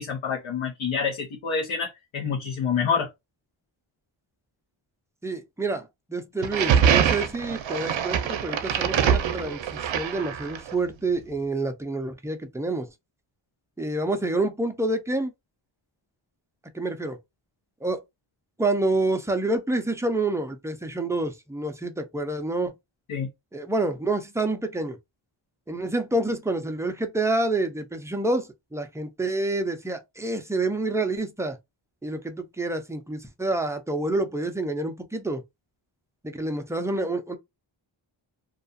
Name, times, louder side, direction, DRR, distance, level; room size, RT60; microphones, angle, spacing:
voice 1, 0.0-3.1 23.1-23.3, left 6 dB, 75° left, 0.8 m, -27 dB
voice 2, 5.2-9.6 9.9-12.9 13.8-15.3 16.7-17.2 17.8-18.0 18.6-22.7 23.5-25.0 25.7-31.6 32.0-35.4 36.2-37.4, right 2 dB, 5° right, 0.4 m, -28 dB
sound 1, 6.4-10.7, right 8 dB, 70° right, 0.6 m, -24 dB
2.4 x 2.3 x 2.5 m
wide cardioid pair, 90°, 48 cm